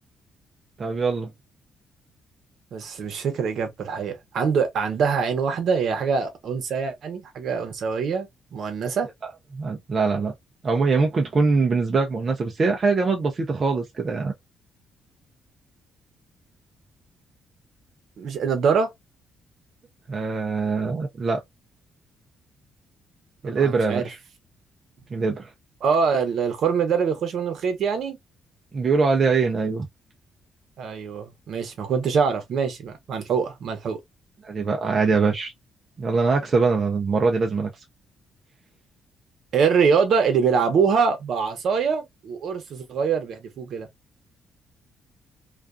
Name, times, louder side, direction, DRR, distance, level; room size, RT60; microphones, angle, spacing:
voice 1, 0.8-1.3 9.5-10.3 10.6-14.3 20.1-21.4 23.4-24.2 25.1-25.5 28.7-29.9 34.4-35.5 36.0-37.7, right 4 dB, 35° right, 0.5 m, -23 dB
voice 2, 2.7-9.1 18.2-18.9 23.5-24.1 25.8-28.2 30.8-34.0 39.5-43.9, right 6 dB, 60° right, 0.8 m, -24 dB
2.4 x 2.3 x 2.4 m
cardioid pair, 135°, 0 cm